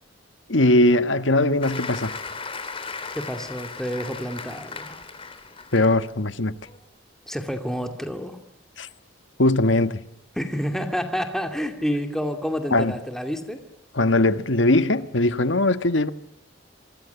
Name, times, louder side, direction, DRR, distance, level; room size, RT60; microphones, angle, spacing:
voice 1, 0.5-2.2 5.7-6.5 8.8-8.9 9.4-10.0 12.7-12.9 13.9-16.1, left 2 dB, 70° left, 1.5 m, -20 dB
Applause, 1.6-6.1 6.6-6.8, left 4 dB, 30° left, 3.5 m, -36 dB
voice 2, 3.1-5.0 7.3-8.4 10.3-13.6, equal, 5° left, 2.5 m, -29 dB
27.5 x 25.0 x 6.9 m
head